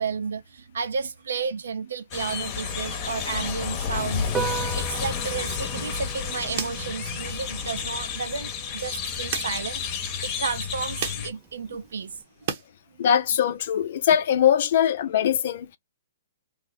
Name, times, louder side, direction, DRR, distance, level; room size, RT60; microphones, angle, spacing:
voice 1, 0.0-12.1, right 5 dB, 75° right, 0.6 m, -32 dB
sound 1, 2.1-11.3, left 7 dB, 35° left, 0.9 m, -31 dB
Piano, 4.2-12.2, right 8 dB, 15° right, 0.4 m, -39 dB
sound 2, 7.3-12.7 13.0-14.2, right 8 dB, 50° right, 0.9 m, -39 dB
voice 2, 13.0-15.8, left 9 dB, 55° left, 0.5 m, -22 dB
3.3 x 2.1 x 3.9 m
hypercardioid pair, 135°, 0 cm